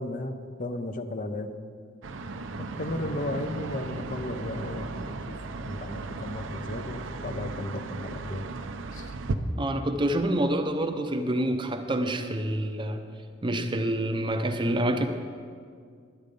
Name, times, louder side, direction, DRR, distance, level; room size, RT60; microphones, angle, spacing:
voice 1, 0.0-1.5 2.6-5.4 5.6-8.5 8.9-9.1, left 1 dB, 45° left, 8 dB, 0.6 m, -35 dB
sound 1, 2.0-9.3, right 3 dB, 90° right, 0.6 m, -36 dB
voice 2, 9.6-13.0 13.4-15.0, right 1 dB, 25° right, 7 dB, 0.6 m, -27 dB
11.5 x 8.6 x 5.2 m, 2.1 s
head